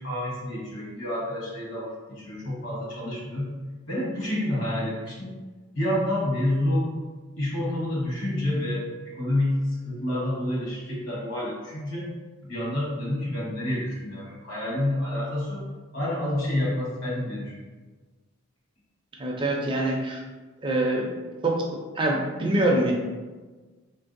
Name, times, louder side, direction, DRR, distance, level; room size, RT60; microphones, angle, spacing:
voice 1, 0.0-3.5 3.9-5.3 5.7-6.9 7.4-12.1 12.4-15.6 15.9-17.5, left 1 dB, 60° left, -5 dB, 1.1 m, -28 dB
voice 2, 19.2-20.2 20.6-21.1 21.4-21.7 22.0-22.9, right 1 dB, 25° right, -1 dB, 0.4 m, -24 dB
3.4 x 2.5 x 2.5 m, 1.3 s
head